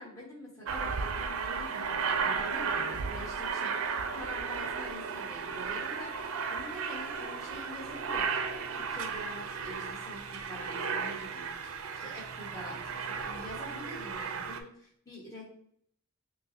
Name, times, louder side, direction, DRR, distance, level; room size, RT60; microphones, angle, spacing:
voice 1, 0.0-8.4 8.7-15.4, equal, 15° left, -7 dB, 1.2 m, -46 dB
Aircraft, 0.7-14.6, right 5 dB, 85° right, 0.4 m, -34 dB
5.7 x 2.1 x 2.6 m, 0.65 s
head